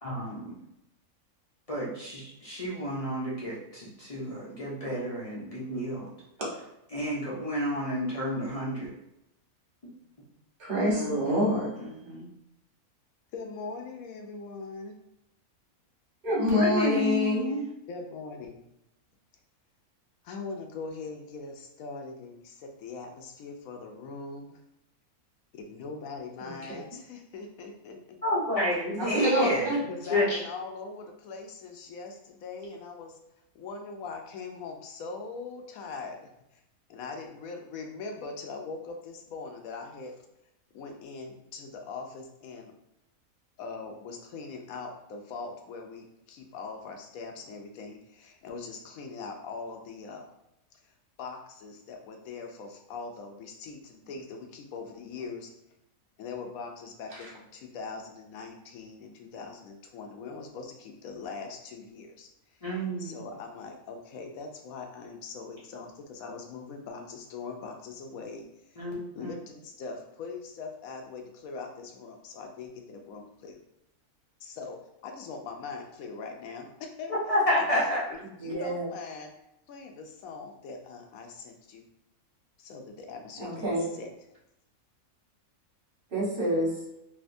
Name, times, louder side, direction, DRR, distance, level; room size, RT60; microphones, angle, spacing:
voice 1, 0.0-0.6 1.7-6.1 6.9-8.9 10.9-11.4 12.0-12.3 16.6-17.6 28.2-29.7 30.1-30.4 62.6-63.2 68.8-69.4 77.1-78.0, left 1 dB, 40° left, 0.5 m, -30 dB
voice 2, 10.6-11.7 16.2-17.4 26.4-26.5 29.1-29.8 57.1-57.3 78.4-78.8 83.4-83.9 86.1-86.8, equal, 40° right, 1.3 m, -27 dB
voice 3, 13.3-15.0 17.9-18.6 20.2-24.6 25.5-28.2 29.9-33.2 33.5-36.6 36.9-40.1 40.7-42.7 43.6-50.3 50.8-50.9 51.2-55.5 56.2-62.3 63.0-68.8 69.1-73.6 74.4-77.1 77.7-79.3 79.7-81.8 82.6-84.1, left 4 dB, 75° left, 1.0 m, -41 dB
3.4 x 2.7 x 2.6 m
omnidirectional pair, 1.6 m